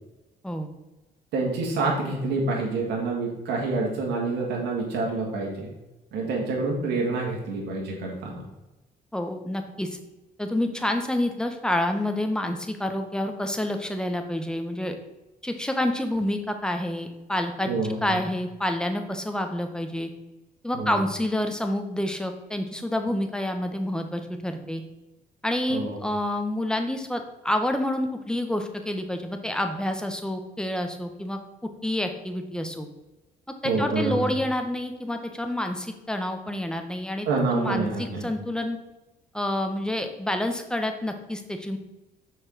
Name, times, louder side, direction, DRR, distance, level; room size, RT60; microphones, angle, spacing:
voice 1, 1.3-5.7 6.1-8.4 17.7-18.2 20.7-21.0 25.7-26.0 33.6-34.3 37.2-38.2, right 3 dB, 85° right, -2 dB, 1.8 m, -27 dB
voice 2, 9.1-9.9 10.4-14.9 15.4-17.7 18.0-20.1 20.6-24.8 25.4-31.4 31.8-32.9 33.6-38.8 39.3-41.8, left 1 dB, 5° left, 5 dB, 1.2 m, -28 dB
6.3 x 4.6 x 6.2 m, 1.0 s
cardioid pair, 85°, 17 cm